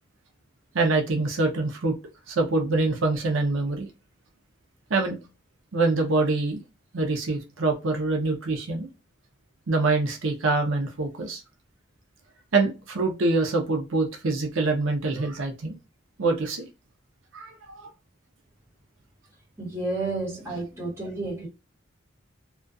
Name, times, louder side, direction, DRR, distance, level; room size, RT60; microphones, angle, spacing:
voice 1, 0.7-2.0 2.3-3.9 4.9-5.2 5.7-6.6 6.9-8.9 9.7-11.4 12.5-15.7 16.2-16.7 17.3-17.9, right 3 dB, 85° right, 0.6 m, -25 dB
voice 2, 19.6-21.5, right 2 dB, 15° right, 1.1 m, -31 dB
2.3 x 2.3 x 2.5 m
head